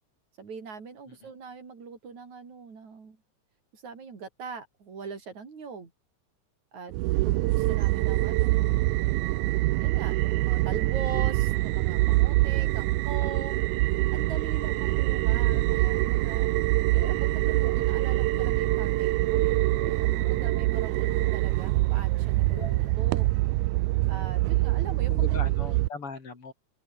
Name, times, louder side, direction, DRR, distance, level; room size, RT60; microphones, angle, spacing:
voice 1, 0.4-3.2 3.7-5.9 6.7-6.9 7.2-8.9 9.8-13.6 14.1-16.5 16.9-23.3 24.1-25.4, right 5 dB, 70° right, 5.6 m, -41 dB
sound 1, 6.9-25.9, right 20 dB, 85° right, 2.1 m, -25 dB
sound 2, 15.3-22.9, left 7 dB, 70° left, 4.1 m, -48 dB
voice 2, 24.5-26.5, left 4 dB, 45° left, 4.6 m, -40 dB
open air
omnidirectional pair, 3.4 m